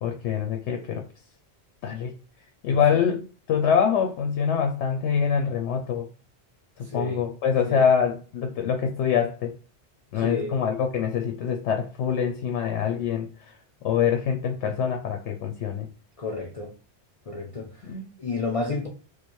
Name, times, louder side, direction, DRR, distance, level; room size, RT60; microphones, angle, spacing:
voice 1, 0.0-1.0 1.8-2.1 2.6-6.1 6.8-9.5 10.1-13.5 13.8-15.9 17.8-18.1, left 7 dB, 85° left, 0.9 m, -25 dB
voice 2, 6.9-7.2 7.6-7.8 10.1-10.6 16.2-16.7 17.3-17.7 18.2-18.9, left 3 dB, 50° left, 0.4 m, -31 dB
3.1 x 2.2 x 4.2 m
omnidirectional pair, 1.1 m